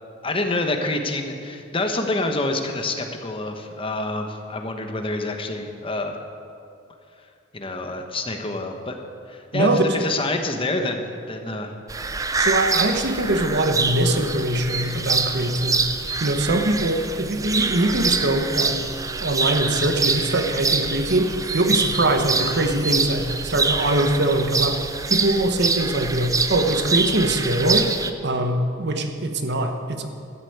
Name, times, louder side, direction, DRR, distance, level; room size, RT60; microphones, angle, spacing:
voice 1, 0.2-6.2 7.5-8.9 9.3-11.7, left 2 dB, 25° left, 4 dB, 1.2 m, -27 dB
voice 2, 9.5-10.0 12.4-15.9 16.2-18.8 19.2-27.9 28.2-30.1, right 1 dB, 55° right, 6 dB, 1.2 m, -22 dB
sound 1, 11.9-28.1, right 4 dB, 15° right, 0.5 m, -25 dB
13.5 x 8.3 x 8.1 m, 2.5 s
head